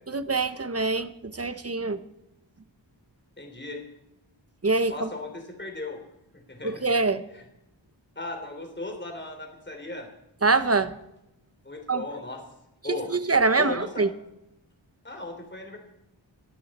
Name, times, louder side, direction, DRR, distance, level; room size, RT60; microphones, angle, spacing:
voice 1, 0.1-2.0 4.6-5.1 6.6-7.2 10.4-10.9 11.9-12.0 12.9-14.1, right 3 dB, 30° right, 12 dB, 1.0 m, -24 dB
voice 2, 3.4-3.8 4.9-6.0 6.3-6.8 7.3-7.4 8.1-10.1 11.6-12.4 12.8-13.1 13.6-14.1 15.0-15.8, left 2 dB, 25° left, 3 dB, 3.3 m, -36 dB
24.5 x 13.0 x 4.3 m, 0.86 s
wide cardioid pair, 75°, 47 cm